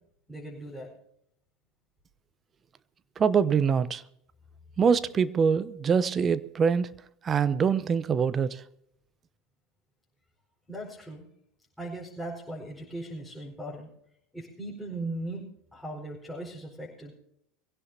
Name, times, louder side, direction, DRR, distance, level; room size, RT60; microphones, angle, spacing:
voice 1, 0.3-0.9 10.7-11.2 11.8-13.9 14.3-17.1, right 1 dB, ahead, 5.0 m, -38 dB
voice 2, 3.2-4.0 4.8-6.9 7.2-8.6, right 6 dB, 30° right, 0.8 m, -24 dB
23.0 x 16.5 x 2.9 m
hypercardioid pair, 80°, 0 cm